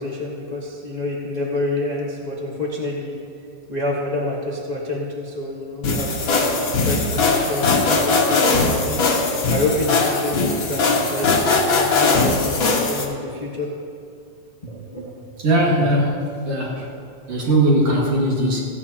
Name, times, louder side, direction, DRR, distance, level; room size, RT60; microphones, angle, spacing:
voice 1, 0.0-3.1 3.7-6.4 6.8-13.7 14.6-15.4 15.8-15.9, left 2 dB, 80° left, -4 dB, 0.3 m, -28 dB
sound 1, 5.8-13.0, left 3 dB, 50° left, 1.8 m, -20 dB
voice 2, 15.4-16.9 17.3-18.6, right 1 dB, 55° right, -4 dB, 2.9 m, -19 dB
15.5 x 15.5 x 2.9 m, 2.4 s
omnidirectional pair, 3.3 m